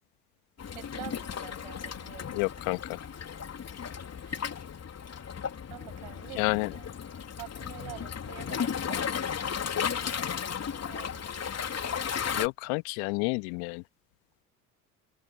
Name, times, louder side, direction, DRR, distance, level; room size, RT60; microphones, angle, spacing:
Waves surf, 0.6-12.5, left 7 dB, 30° left, 3.6 m, -35 dB
voice 1, 0.7-2.4 4.2-4.7 5.7-6.9 7.4-9.2 10.8-11.2, right 39 dB, 65° right, 7.1 m, -47 dB
voice 2, 2.3-2.8 6.4-6.7 12.3-13.8, left 37 dB, 65° left, 1.9 m, -29 dB
figure-of-eight pair, 60°, 47 cm